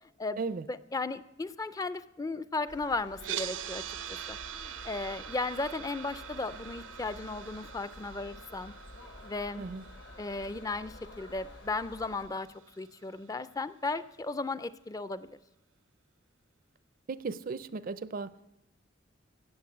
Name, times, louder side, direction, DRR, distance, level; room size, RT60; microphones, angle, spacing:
voice 1, 0.7-3.8 4.3-8.7 9.2-9.6 10.2-12.5 12.8-15.4, left 3 dB, 20° left, 14 dB, 0.4 m, -35 dB
sound 1, 2.7-12.3, left 2 dB, 65° left, 1.2 m, -50 dB
sound 2, 3.2-13.3, right 10 dB, 85° right, 0.6 m, -44 dB
voice 2, 17.1-18.3, right 4 dB, 45° right, 16 dB, 0.4 m, -36 dB
16.0 x 6.7 x 8.6 m, 0.93 s
head